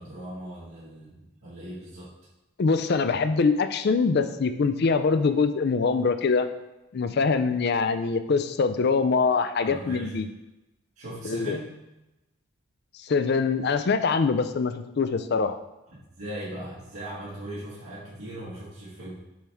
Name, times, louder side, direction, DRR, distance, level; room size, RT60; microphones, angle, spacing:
voice 1, 0.0-2.1 9.6-10.2 10.9-11.8 16.2-19.2, right 1 dB, 75° right, -9 dB, 1.7 m, -38 dB
voice 2, 2.6-6.5 6.9-10.3 11.2-11.6 13.1-15.6, left 4 dB, 50° left, 10 dB, 0.4 m, -24 dB
7.4 x 4.4 x 3.5 m, 0.99 s
head